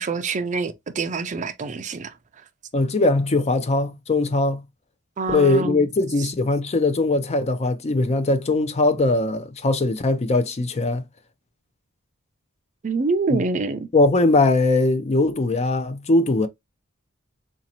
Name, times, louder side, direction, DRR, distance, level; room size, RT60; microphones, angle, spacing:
voice 1, 0.0-2.1 5.2-5.8 12.8-13.9, right 3 dB, 35° right, 0.4 m, -26 dB
voice 2, 2.7-4.6 5.3-11.1 13.3-13.4 13.9-16.5, left 2 dB, 30° left, 0.4 m, -20 dB
4.0 x 2.6 x 2.8 m
head